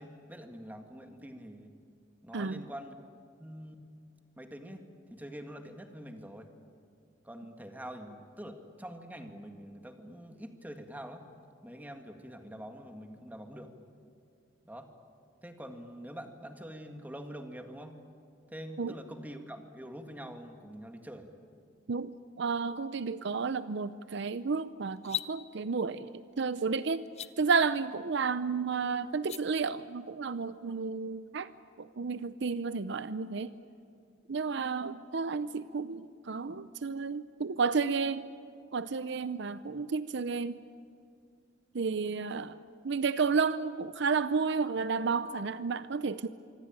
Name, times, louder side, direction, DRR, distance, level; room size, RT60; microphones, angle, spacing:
voice 1, 0.0-1.8 2.2-3.1 3.4-4.0 4.4-6.5 7.2-11.3 11.6-13.7 14.7-14.9 15.4-18.0 18.5-21.3, equal, 10° right, 5 dB, 1.9 m, -45 dB
voice 2, 2.3-2.7 18.8-18.9 21.9-27.1 27.4-31.5 31.8-33.5 34.3-38.3 38.7-40.6 41.7-42.6 42.8-46.3, right 5 dB, 65° right, 14 dB, 0.6 m, -32 dB
sound 1, 25.0-25.3 27.0-27.3 29.1-29.4, left 10 dB, 35° left, 0.7 m, -36 dB
25.5 x 24.0 x 8.9 m, 2.3 s
head